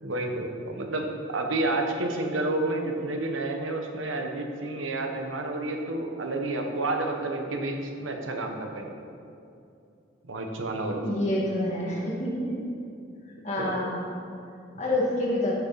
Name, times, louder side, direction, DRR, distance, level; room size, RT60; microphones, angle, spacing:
voice 1, 0.0-8.9 10.3-11.0 13.6-13.7, right 2 dB, 90° right, 2 dB, 1.3 m, -30 dB
voice 2, 11.0-12.6 13.4-14.1 14.8-15.5, left 1 dB, 35° left, -4 dB, 2.2 m, -27 dB
14.0 x 7.2 x 4.2 m, 2.6 s
head